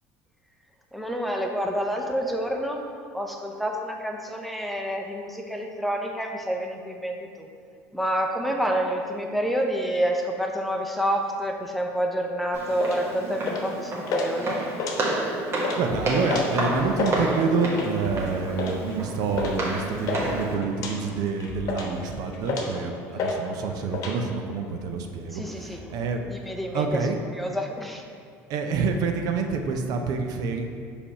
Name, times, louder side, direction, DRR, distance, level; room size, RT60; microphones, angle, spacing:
voice 1, 0.9-2.8 3.1-7.5 7.9-14.6 23.2-23.3 25.3-25.8 26.3-26.9 27.3-28.0, equal, ahead, 1 dB, 0.6 m, -28 dB
Walk footsteps, 12.5-20.5, right 2 dB, 40° right, 1.3 m, -30 dB
sound 1, 12.8-13.0 13.5-13.8 14.1-14.3 14.7-15.3 15.6-15.8 16.3-16.5 16.8-17.2 17.7-18.0 18.6-18.8 19.4-19.6 19.8-20.2 20.7-20.9 21.4-22.0 22.4-22.8 23.2-23.4 23.6-24.1, left 4 dB, 55° left, 1.0 m, -29 dB
sound 2, 15.5-24.8, left 3 dB, 90° left, 0.7 m, -42 dB
voice 2, 15.8-26.3 26.7-27.2 28.5-30.7, right 4 dB, 65° right, 5 dB, 0.5 m, -27 dB
5.0 x 3.4 x 5.6 m, 2.2 s
supercardioid pair, 95°, 7 cm